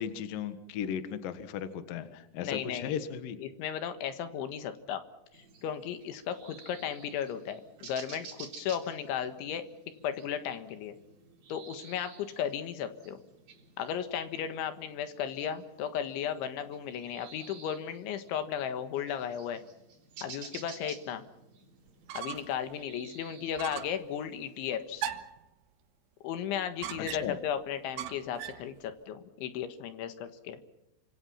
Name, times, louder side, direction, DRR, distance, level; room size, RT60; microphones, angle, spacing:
voice 1, 0.0-3.4 27.0-27.4, left 8 dB, 60° left, 10 dB, 2.9 m, -36 dB
voice 2, 2.4-2.9 3.4-5.0 5.6-9.6 10.0-11.0 11.5-13.2 13.8-19.6 20.2-21.2 22.2-25.1 26.2-30.6, left 8 dB, 80° left, 9 dB, 3.9 m, -35 dB
sound 1, 5.3-24.8, right 5 dB, 50° right, 5.1 m, -53 dB
sound 2, 21.9-22.6 23.0-23.1 23.6-24.0 25.0-25.4 26.8-27.5 28.0-28.7, right 10 dB, 85° right, 3.8 m, -39 dB
28.0 x 26.0 x 5.7 m, 0.88 s
omnidirectional pair, 5.3 m